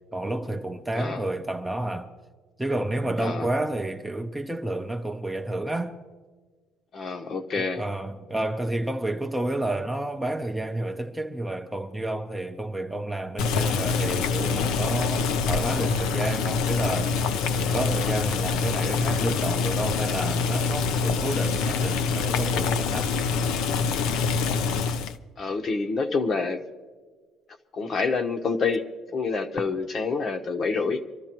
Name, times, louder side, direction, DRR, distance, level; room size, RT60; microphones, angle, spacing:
voice 1, 0.1-2.1 2.6-6.0 7.5-17.1 17.5-23.1, right 1 dB, 5° right, 0.7 m, -30 dB
voice 2, 6.9-7.8 25.4-26.6 27.7-31.0, left 4 dB, 35° left, 1.0 m, -27 dB
Boiling, 13.4-25.2, left 5 dB, 75° left, 0.7 m, -25 dB
25.0 x 13.5 x 3.0 m
cardioid pair, 150°, 0 cm